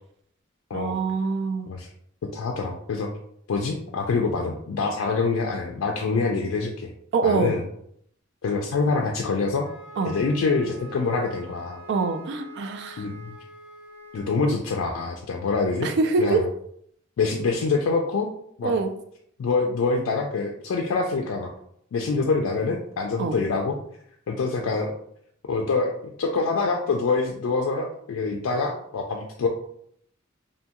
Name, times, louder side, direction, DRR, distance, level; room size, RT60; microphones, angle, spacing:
voice 1, 0.7-1.7 7.1-7.5 10.0-10.1 11.9-13.0 15.8-16.4 18.6-18.9 23.2-23.4, right 4 dB, 60° right, 8 dB, 0.3 m, -24 dB
voice 2, 2.3-3.1 3.5-6.9 7.2-7.6 8.4-9.7 10.0-11.8 13.0-13.4 14.1-15.9 16.2-16.5 17.2-18.3 18.6-18.7 19.4-21.5 21.9-23.8 24.3-24.9 25.5-25.9 26.2-29.5, left 4 dB, 85° left, 2 dB, 0.3 m, -25 dB
Wind instrument woodwind instrument, 9.6-14.4, right 1 dB, 10° right, 1.0 m, -45 dB
2.7 x 2.2 x 2.8 m, 0.68 s
head